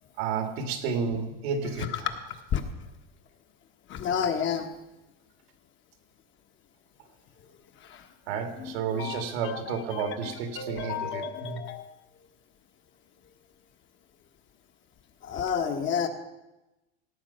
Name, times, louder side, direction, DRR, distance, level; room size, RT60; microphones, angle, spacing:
voice 1, 0.2-2.1 8.3-11.6, right 6 dB, 80° right, 5 dB, 2.2 m, -31 dB
voice 2, 3.9-4.7 8.6-9.6 9.9-10.0 10.6-11.8 15.2-16.1, left 7 dB, 40° left, 5 dB, 1.4 m, -30 dB
17.0 x 7.5 x 5.6 m, 0.99 s
supercardioid pair, 125°, 30 cm